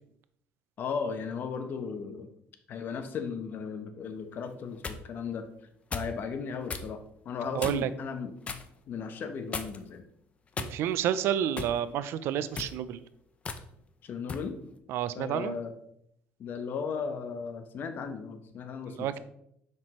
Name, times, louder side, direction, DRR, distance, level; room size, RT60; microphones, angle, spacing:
voice 1, 0.8-2.3 2.7-5.5 5.9-7.0 7.2-8.6 8.9-10.0 14.0-14.6 15.1-15.7 16.4-19.2, left 5 dB, 50° left, 7 dB, 0.9 m, -36 dB
sound 1, 4.5-5.0 5.9-6.2 6.7-6.9 7.6-7.9 8.4-8.7 9.5-9.9 10.5-11.1 11.6-11.8 12.4-12.8 13.4-13.6 14.3-14.5, left 4 dB, 30° left, 0.6 m, -36 dB
voice 2, 7.5-7.9 10.6-13.0 14.9-15.6 19.0-19.2, right 10 dB, 70° right, 14 dB, 0.5 m, -29 dB
7.4 x 5.9 x 3.1 m, 0.74 s
cardioid pair, 120°, 4 cm